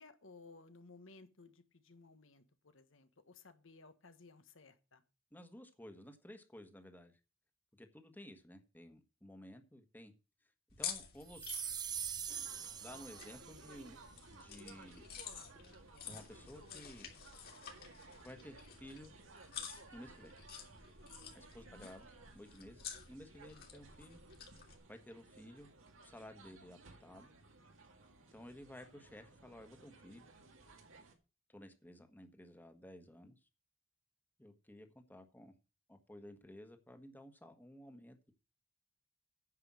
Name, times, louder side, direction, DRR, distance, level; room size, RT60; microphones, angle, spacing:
voice 1, 0.0-5.0 21.7-21.9, left 3 dB, 70° left, 1.4 m, -59 dB
voice 2, 5.3-7.2 7.8-10.1 10.8-11.6 12.8-14.0 14.3-15.0 16.0-17.1 18.2-19.1 19.9-20.3 21.3-22.1 22.3-24.2 24.9-25.7 26.0-27.3 28.3-30.3 31.5-33.3 34.4-35.5 35.9-38.3, left 1 dB, 10° left, 1.5 m, -54 dB
sound 1, 10.7-24.8, left 8 dB, 50° left, 2.8 m, -50 dB
sound 2, 11.3-13.8, right 8 dB, 20° right, 0.5 m, -43 dB
sound 3, 12.3-31.1, right 3 dB, 85° right, 2.2 m, -59 dB
9.7 x 5.5 x 7.5 m
head